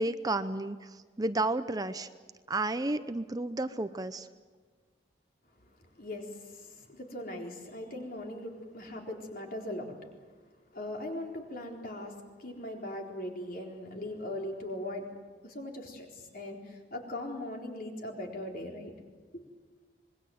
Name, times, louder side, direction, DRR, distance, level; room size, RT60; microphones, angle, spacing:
voice 1, 0.0-2.1 2.5-4.3, right 2 dB, 20° right, 11 dB, 0.7 m, -32 dB
voice 2, 6.0-10.1 10.7-15.1 15.4-18.9 19.3-19.4, left 1 dB, 50° left, 1 dB, 4.1 m, -40 dB
26.0 x 21.5 x 7.8 m, 1.5 s
head